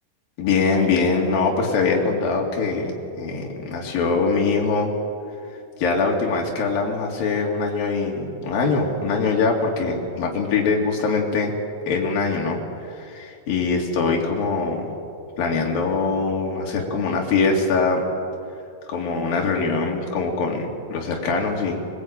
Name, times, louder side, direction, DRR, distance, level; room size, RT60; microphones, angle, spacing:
voice 1, 0.4-4.9 5.8-11.5 11.9-14.9 15.4-18.1 18.9-21.8, left 4 dB, 50° left, 0 dB, 4.3 m, -23 dB
22.5 x 20.5 x 8.9 m, 2.5 s
omnidirectional pair, 5.5 m